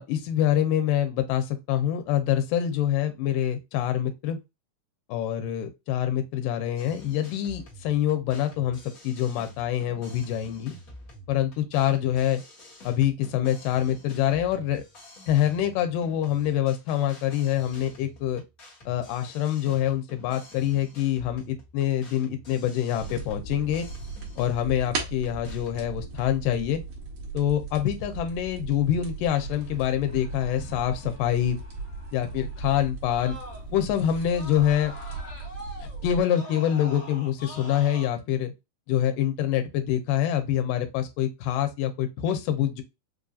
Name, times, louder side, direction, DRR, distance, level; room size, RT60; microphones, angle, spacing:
voice 1, 0.0-4.4 5.1-10.8 11.3-12.4 12.8-14.8 15.3-18.4 18.9-23.9 24.4-26.8 27.3-31.6 32.1-33.4 33.7-34.9 36.0-38.5 38.9-42.8, left 11 dB, 80° left, 2.4 m, -25 dB
sound 1, 6.8-25.8, equal, 55° left, 0.9 m, -49 dB
sound 2, 22.9-36.2, right 4 dB, 75° right, 1.2 m, -38 dB
Screaming, 29.3-33.9 34.2-38.1, left 1 dB, 30° left, 0.7 m, -45 dB
5.1 x 2.6 x 2.4 m
omnidirectional pair, 3.9 m